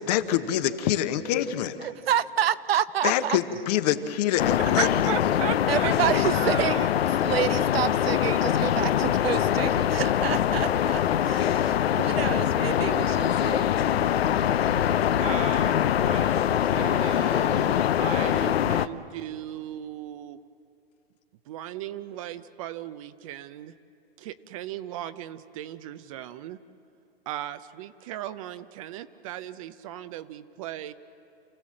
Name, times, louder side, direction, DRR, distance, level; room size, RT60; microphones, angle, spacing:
voice 1, 0.0-1.8 3.0-4.9, left 11 dB, 40° left, 10 dB, 1.0 m, -25 dB
voice 2, 1.8-3.4 5.7-6.9 7.2-13.7, right 10 dB, 70° right, 14 dB, 0.8 m, -29 dB
sound 1, 4.4-18.9, left 10 dB, 80° left, 0.7 m, -23 dB
voice 3, 4.4-5.9 6.2-6.9 15.2-20.4 21.5-23.7 24.2-26.6 27.3-30.9, right 12 dB, 35° right, 13 dB, 0.5 m, -37 dB
28.5 x 15.5 x 7.5 m, 2.5 s
hypercardioid pair, 140°, 31 cm